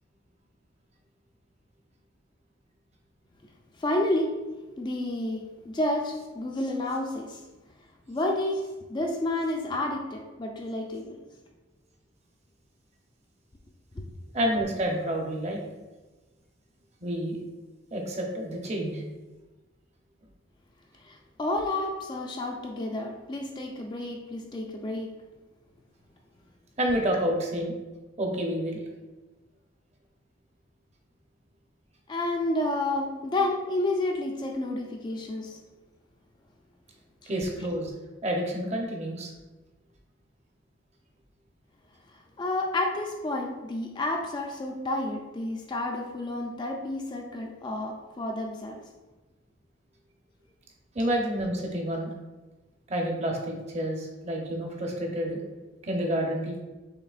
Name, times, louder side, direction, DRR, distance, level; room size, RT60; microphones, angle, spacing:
voice 1, 3.8-4.4 4.8-7.4 8.1-11.2 13.9-14.0 21.0-25.1 32.1-35.6 37.2-37.3 42.1-48.8, left 1 dB, 20° left, 2 dB, 0.3 m, -30 dB
voice 2, 14.3-15.6 17.0-17.4 17.9-19.0 26.8-27.8 28.2-28.8 37.3-37.9 38.2-39.3 50.9-52.1 52.9-55.4 55.8-56.6, equal, 35° right, 1 dB, 0.7 m, -29 dB
5.8 x 3.6 x 2.4 m, 1.2 s
head